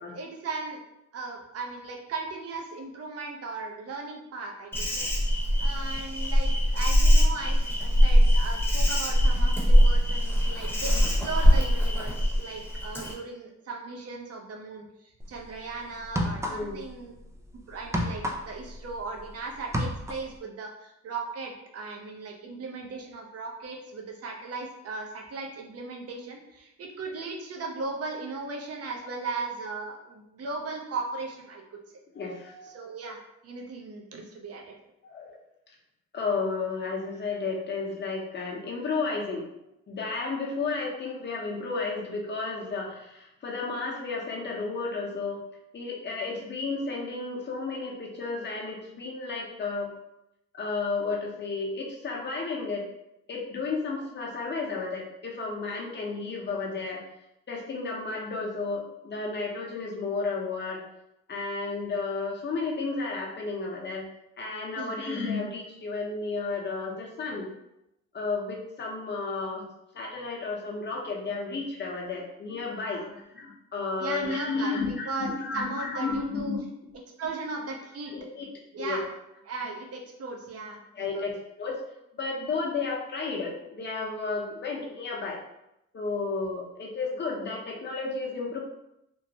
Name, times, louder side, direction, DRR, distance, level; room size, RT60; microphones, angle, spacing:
voice 1, 0.1-0.8 1.1-4.7 5.0-5.1 5.6-14.9 15.3-17.1 17.7-31.6 32.7-34.7 64.7-65.0 72.9-73.1 74.0-76.6 77.2-78.1 78.7-79.0 79.5-81.3, right 3 dB, 50° right, 1 dB, 0.7 m, -37 dB
Insect, 4.7-13.1, equal, 5° left, 0.9 m, -22 dB
sound 1, 15.2-15.4 16.0-16.9 17.2-19.3 19.6-20.3, equal, 10° right, 0.3 m, -30 dB
voice 2, 16.3-16.8 32.1-32.7 35.0-35.4 36.1-39.5 39.9-45.4 45.7-49.9 50.5-52.8 53.3-57.0 57.5-60.8 61.3-64.0 64.4-67.5 68.1-69.6 69.9-76.6 78.1-78.5 78.8-79.0 80.9-81.8 82.2-85.4 85.9-88.6, left 4 dB, 35° left, -1 dB, 0.8 m, -32 dB
3.0 x 2.1 x 2.7 m, 0.85 s
cardioid pair, 90°, 30 cm